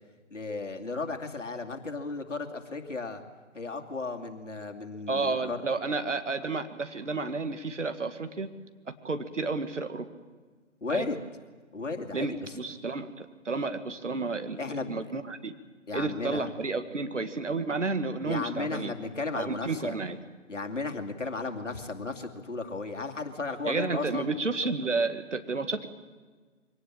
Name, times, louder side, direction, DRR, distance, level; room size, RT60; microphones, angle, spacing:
voice 1, 0.3-3.2 3.5-5.6 10.8-11.2 11.7-12.4 14.6-15.0 15.9-16.5 18.2-20.0 20.5-24.3, left 3 dB, 70° left, 4 dB, 2.7 m, -34 dB
voice 2, 5.1-8.5 9.0-10.1 10.9-11.1 12.1-14.6 14.9-15.5 15.9-18.9 19.4-20.2 23.7-25.9, right 3 dB, 70° right, 9 dB, 2.0 m, -31 dB
23.5 x 18.0 x 8.8 m, 1.4 s
figure-of-eight pair, 145°, 38 cm